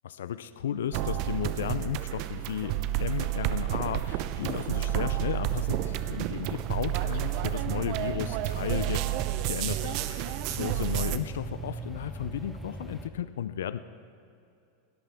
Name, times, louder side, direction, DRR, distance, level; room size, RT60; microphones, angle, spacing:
voice 1, 0.0-9.1 9.5-13.8, left 10 dB, 85° left, 13 dB, 0.4 m, -34 dB
sound 1, 0.9-11.2, right 14 dB, 55° right, 0.7 m, -30 dB
sound 2, 5.2-13.1, right 2 dB, 10° right, 1.2 m, -41 dB
21.0 x 13.5 x 3.5 m, 2.6 s
supercardioid pair, 120°, 0 cm